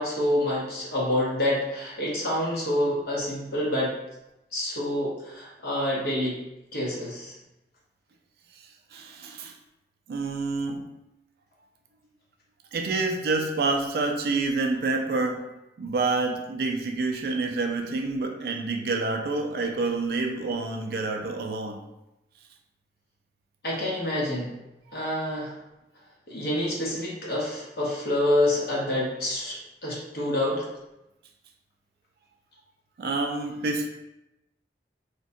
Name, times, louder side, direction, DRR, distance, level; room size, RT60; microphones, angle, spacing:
voice 1, 0.0-3.9 4.5-6.4 6.7-7.3 23.6-24.5 24.9-25.5 26.3-30.7, left 1 dB, 60° left, -5 dB, 0.8 m, -27 dB
voice 2, 8.9-9.5 10.1-10.9 12.7-15.5 15.8-21.8 33.0-33.9, right 3 dB, 60° right, 3 dB, 0.3 m, -28 dB
2.6 x 2.1 x 2.5 m, 0.91 s
head